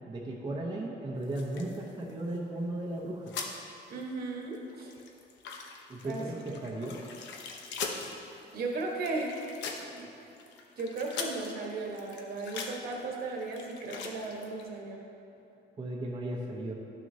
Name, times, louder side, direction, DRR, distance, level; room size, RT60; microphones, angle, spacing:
voice 1, 0.0-3.3 5.9-7.0 15.8-16.7, right 1 dB, 25° right, -3 dB, 0.8 m, -36 dB
sound 1, 1.2-2.7 3.0-3.6 4.0-4.1 4.4-14.7, left 5 dB, 75° left, 0.8 m, -42 dB
voice 2, 3.9-4.9 6.0-6.4 8.5-9.5 9.9-10.1 10.8-15.1, right 3 dB, 55° right, -1 dB, 1.3 m, -36 dB
12.0 x 6.1 x 2.8 m, 2.7 s
cardioid pair, 140°, 19 cm